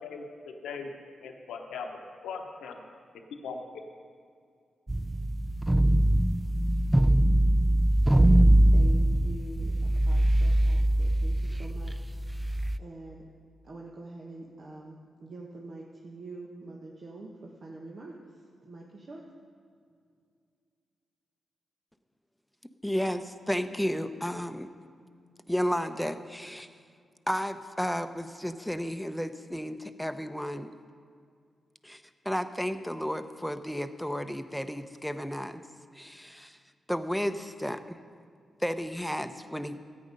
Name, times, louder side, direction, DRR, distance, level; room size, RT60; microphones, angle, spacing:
voice 1, 0.0-0.9 1.2-2.8 3.4-3.6, left 5 dB, 85° left, 3 dB, 1.0 m, -39 dB
sound 1, 4.9-12.8, right 1 dB, 15° right, 0.4 m, -23 dB
voice 2, 8.7-12.2 12.4-13.2 13.6-18.2 18.6-19.3, right 2 dB, 60° right, -2 dB, 1.3 m, -45 dB
voice 3, 22.8-24.7 25.5-26.7 27.3-30.7 31.8-35.6 35.9-36.6 36.9-38.0 38.6-39.8, equal, 5° left, 9 dB, 0.8 m, -32 dB
13.5 x 8.8 x 5.3 m, 2.2 s
supercardioid pair, 40°, 0 cm